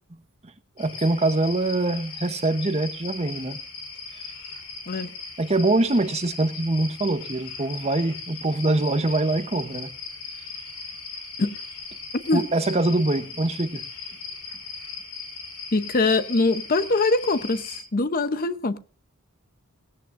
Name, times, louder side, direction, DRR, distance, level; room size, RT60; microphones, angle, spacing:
sound 1, 0.8-17.8, left 4 dB, 85° left, 4.1 m, -38 dB
voice 1, 0.8-3.6 5.4-9.9 12.3-13.8, right 2 dB, 30° right, 0.8 m, -24 dB
voice 2, 15.7-18.8, left 3 dB, 40° left, 0.7 m, -23 dB
18.0 x 15.5 x 2.5 m
head